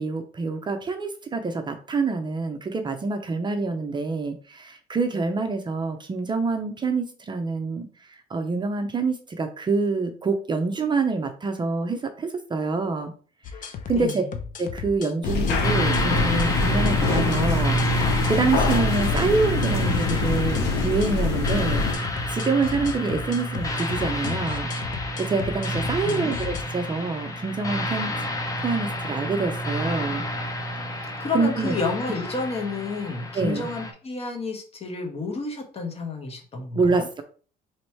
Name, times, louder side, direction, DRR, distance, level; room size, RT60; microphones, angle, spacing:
voice 1, 0.0-13.1 13.9-14.2 14.6-21.8 22.3-24.7 25.2-28.1 28.6-30.2 30.9-31.7 33.3-33.7 36.7-37.2, right 4 dB, 25° right, 6 dB, 0.5 m, -26 dB
sound 1, 13.4-26.6, left 7 dB, 50° left, 0.6 m, -35 dB
voice 2, 13.9-14.3 26.0-26.4 31.2-37.1, left 4 dB, 35° left, 3 dB, 1.1 m, -30 dB
sound 2, 15.2-21.9, left 4 dB, 90° left, 0.8 m, -25 dB
sound 3, 15.6-33.9, equal, 20° left, 0.7 m, -29 dB
3.1 x 2.9 x 4.5 m, 0.41 s
cardioid pair, 110°, 17 cm